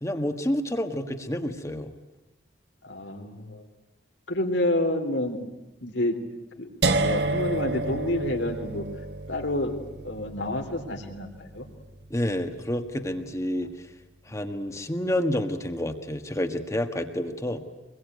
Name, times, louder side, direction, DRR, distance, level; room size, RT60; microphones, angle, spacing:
voice 1, 0.0-1.9 12.1-13.7 14.3-17.6, left 1 dB, 15° left, 6 dB, 1.6 m, -29 dB
voice 2, 2.8-3.6 4.3-5.4 5.8-6.2 6.6-6.7 7.0-8.8 9.3-9.8 10.0-11.3 11.5-11.7 14.3-14.4, left 1 dB, 80° left, 4 dB, 3.7 m, -28 dB
sound 1, 6.8-12.8, right 2 dB, 60° right, 1.3 m, -30 dB
25.5 x 22.0 x 9.5 m, 1.0 s
head